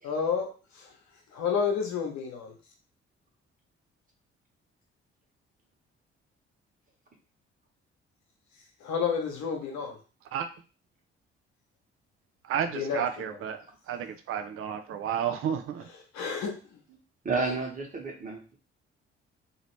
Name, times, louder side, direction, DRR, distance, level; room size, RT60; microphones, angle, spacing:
voice 1, 0.0-0.5 0.7-0.9 1.3-2.5 8.8-10.0 12.6-13.5 15.8-16.8 17.4-17.5, left 6 dB, 60° left, 2 dB, 1.0 m, -31 dB
voice 2, 12.4-15.9, right 8 dB, 40° right, 8 dB, 0.5 m, -32 dB
voice 3, 17.2-18.6, right 3 dB, 25° right, -1 dB, 1.3 m, -31 dB
2.9 x 2.8 x 3.1 m, 0.35 s
figure-of-eight pair, 40°, 32 cm